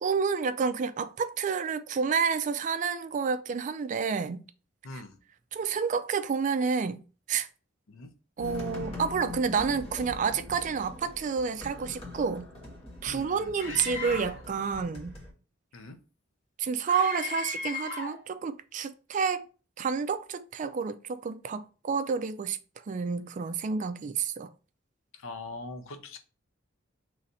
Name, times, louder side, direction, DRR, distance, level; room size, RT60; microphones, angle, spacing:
voice 1, 0.0-4.4 4.9-5.0 5.5-7.0 7.3-7.5 8.4-12.5 13.0-15.2 16.6-19.4 19.8-22.6 22.9-24.5, right 5 dB, 40° right, 0.3 m, -29 dB
voice 2, 4.8-5.2 7.9-8.1 13.1-13.5 15.7-16.0 25.2-26.2, left 2 dB, 90° left, 0.6 m, -42 dB
sound 1, 8.4-15.3, left 2 dB, 30° left, 1.3 m, -42 dB
Screaming, 13.6-14.5 16.9-18.2, left 4 dB, 65° left, 1.7 m, -36 dB
3.2 x 2.6 x 4.1 m
head